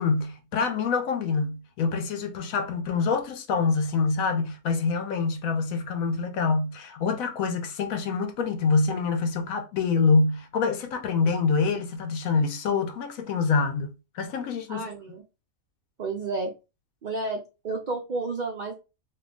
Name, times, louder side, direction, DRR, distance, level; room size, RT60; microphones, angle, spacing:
voice 1, 0.0-14.8, left 4 dB, 80° left, 1.0 m, -26 dB
voice 2, 14.7-15.2 16.0-16.5 17.0-18.7, right 3 dB, 80° right, 0.4 m, -31 dB
2.7 x 2.2 x 3.6 m
omnidirectional pair, 1.5 m